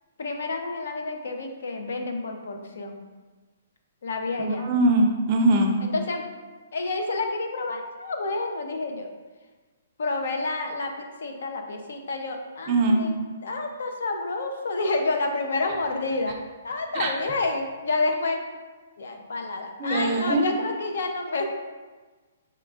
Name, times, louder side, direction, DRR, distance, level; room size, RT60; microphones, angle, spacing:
voice 1, 0.2-3.0 4.0-4.7 5.9-6.2 6.7-9.1 10.0-10.9 11.2-13.1 13.4-16.4 16.6-18.4 19.0-21.4, left 3 dB, 70° left, 4 dB, 0.6 m, -29 dB
voice 2, 4.5-5.7 12.7-13.0 16.9-17.1 19.8-20.6, right 2 dB, 25° right, 2 dB, 0.5 m, -22 dB
5.4 x 3.7 x 2.4 m, 1.3 s
hypercardioid pair, 175°, 0 cm